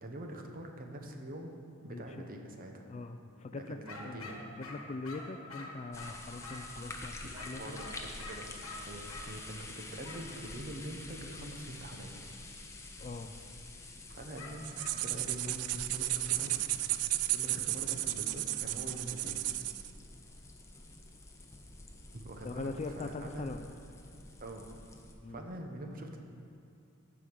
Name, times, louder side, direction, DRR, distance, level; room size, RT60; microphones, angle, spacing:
voice 1, 0.0-2.9 3.5-4.3 6.9-8.5 8.8-12.1 14.1-14.8 15.0-16.6 17.3-19.4 22.1-23.5 24.4-24.7 25.3-26.2, right 1 dB, 40° right, 3 dB, 0.9 m, -44 dB
voice 2, 1.9-2.3 2.9-3.8 4.0-4.3 4.6-7.8 13.0-13.3 22.4-23.6 25.2-25.4, left 3 dB, 30° left, 8 dB, 0.3 m, -42 dB
sound 1, 3.9-6.8 7.4-9.3 10.0-10.3 14.4-15.0, left 2 dB, 75° left, 1.2 m, -46 dB
sound 2, 5.9-25.1, left 2 dB, 15° left, 0.7 m, -48 dB
sound 3, 14.6-19.9, right 15 dB, 85° right, 0.3 m, -34 dB
14.5 x 4.9 x 5.3 m, 2.4 s
head